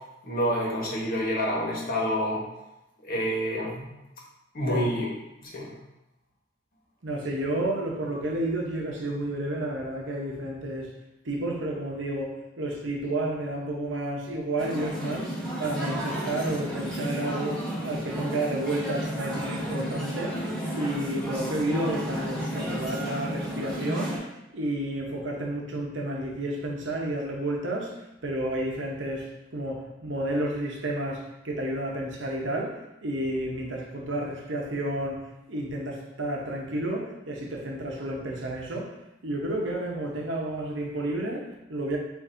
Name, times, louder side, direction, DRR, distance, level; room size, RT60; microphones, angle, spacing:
voice 1, 0.2-2.4 3.0-3.9 4.5-5.1 5.4-5.7, equal, 50° left, -3 dB, 1.1 m, -28 dB
voice 2, 7.0-11.0 11.2-20.4 20.7-38.9 39.2-42.0, right 1 dB, 70° right, -1 dB, 0.9 m, -31 dB
sound 1, 14.6-24.2, equal, 5° left, 1.1 m, -32 dB
7.0 x 2.6 x 2.6 m, 0.91 s
head